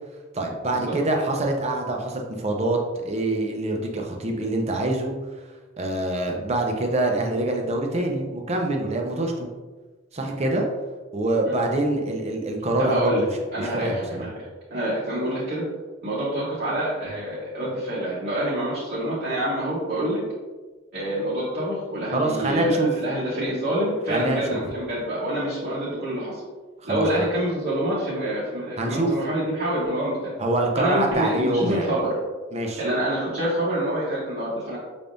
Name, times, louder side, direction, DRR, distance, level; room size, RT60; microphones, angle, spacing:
voice 1, 0.3-5.2 5.8-9.5 10.1-10.7 11.1-13.1 13.6-14.3 22.1-22.9 24.1-24.6 26.8-27.0 28.8-29.1 30.4-31.9 32.5-32.8, right 2 dB, 35° right, 1 dB, 0.7 m, -25 dB
voice 2, 12.8-13.3 13.5-15.6 16.0-20.2 20.9-26.4 26.8-30.3 30.8-32.2 32.8-34.8, right 1 dB, 50° right, -8 dB, 1.1 m, -26 dB
5.7 x 3.5 x 2.6 m, 1.3 s
head